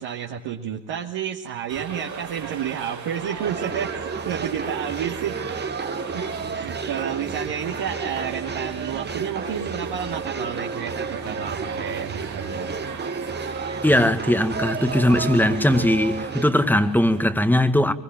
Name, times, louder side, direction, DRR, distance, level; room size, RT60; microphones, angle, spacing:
voice 1, 0.0-12.8, right 8 dB, 65° right, 2.7 m, -31 dB
sound 1, 1.7-17.3, right 6 dB, 35° right, 3.1 m, -36 dB
sound 2, 3.4-16.5, right 4 dB, 20° right, 1.3 m, -32 dB
voice 2, 13.8-17.9, left 1 dB, 5° left, 2.0 m, -19 dB
24.0 x 22.5 x 9.1 m
hypercardioid pair, 70°, 48 cm